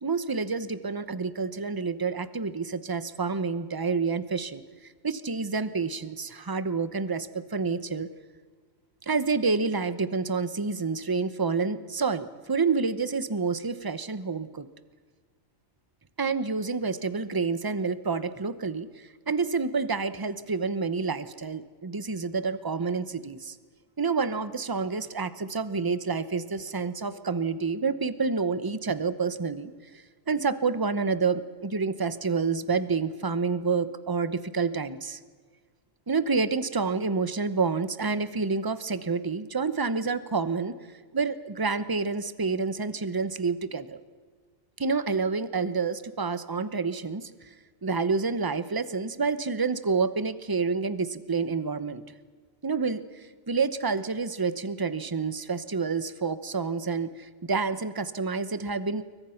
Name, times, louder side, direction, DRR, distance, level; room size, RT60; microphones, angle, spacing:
voice 1, 0.0-4.6 5.0-8.1 9.1-14.7 16.2-18.9 19.3-23.5 24.0-35.2 36.1-40.7 41.1-44.0 44.8-47.3 47.8-52.0 52.6-53.0 53.5-59.0, right 4 dB, 20° right, 13 dB, 0.9 m, -28 dB
29.0 x 22.5 x 5.8 m, 1.5 s
omnidirectional pair, 1.2 m